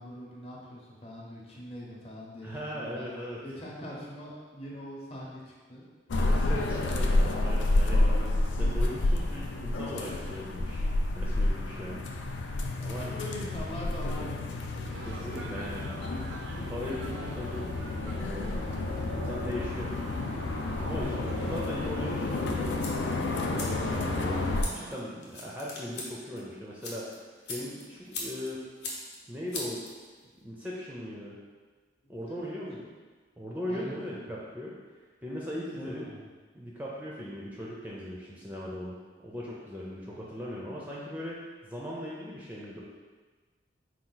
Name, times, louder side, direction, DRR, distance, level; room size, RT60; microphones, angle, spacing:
voice 1, 0.0-3.1 3.4-5.8 11.7-12.1 13.0-14.6 32.0-32.3 33.7-34.3 35.7-36.2, left 1 dB, 30° left, -4 dB, 0.8 m, -43 dB
voice 2, 2.4-3.4 6.1-8.1 8.5-10.9 11.1-12.1 12.8-13.1 14.8-16.0 16.4-17.7 18.0-18.7 19.1-20.0 20.8-22.8 23.0-23.4 23.9-24.4 24.9-27.2 27.5-28.6 29.3-29.9 30.4-31.4 32.1-32.9 33.4-34.7 35.2-36.1 36.5-39.0 39.2-42.8, equal, 10° right, -5 dB, 0.4 m, -39 dB
sound 1, 6.1-24.6, left 2 dB, 85° left, 0.4 m, -30 dB
sound 2, 14.9-25.0, right 2 dB, 80° right, 0.4 m, -45 dB
sound 3, 22.4-30.4, left 2 dB, 65° left, 0.8 m, -42 dB
4.4 x 2.4 x 3.9 m, 1.4 s
head